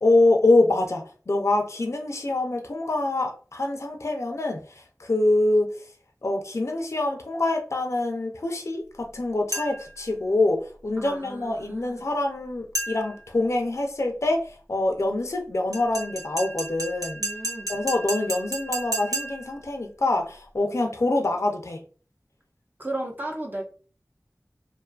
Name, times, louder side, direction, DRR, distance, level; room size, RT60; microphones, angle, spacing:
voice 1, 0.0-5.7 6.2-14.4 14.7-17.2 17.7-21.8, left 2 dB, 50° left, 3 dB, 0.4 m, -25 dB
sound 1, 9.5-10.0 12.7-13.3 15.7-19.6, right 1 dB, 65° right, 0.8 m, -32 dB
voice 2, 11.0-11.9 17.2-17.7 22.8-23.6, right 1 dB, 30° right, 0 dB, 0.5 m, -34 dB
2.5 x 2.3 x 2.3 m, 0.39 s
wide cardioid pair, 45°, 6 cm